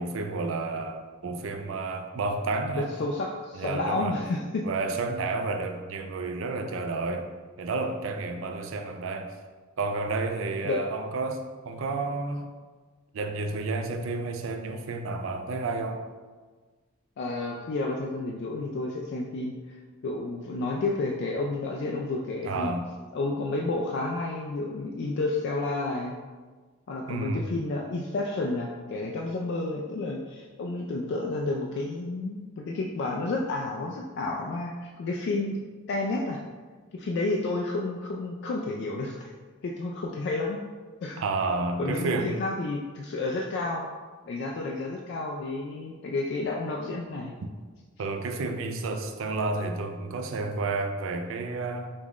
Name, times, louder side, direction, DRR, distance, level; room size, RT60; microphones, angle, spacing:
voice 1, 0.0-2.9 3.5-4.2 4.6-7.3 7.6-9.3 9.8-12.5 13.1-16.0 22.4-22.9 27.1-27.5 41.2-42.3 48.0-51.9, right 3 dB, 70° right, 5 dB, 0.4 m, -31 dB
voice 2, 2.8-4.6 10.6-10.8 17.2-19.8 20.0-22.7 23.1-26.2 26.9-35.6 35.9-36.4 36.9-39.3 39.6-40.6 41.0-41.2 41.8-43.9 44.3-47.3, left 2 dB, 60° left, 0 dB, 0.3 m, -31 dB
5.3 x 2.4 x 3.1 m, 1.4 s
head